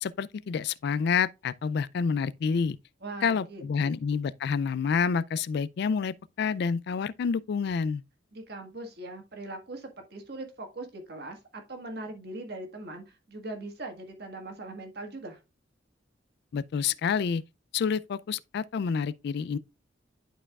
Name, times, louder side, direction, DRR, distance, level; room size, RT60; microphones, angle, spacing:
voice 1, 0.0-2.8 3.2-8.0 16.5-17.4 17.7-19.6, left 6 dB, 60° left, 0.3 m, -28 dB
voice 2, 3.0-4.0 8.3-15.4, right 2 dB, 55° right, 1.6 m, -41 dB
11.0 x 4.5 x 2.3 m
head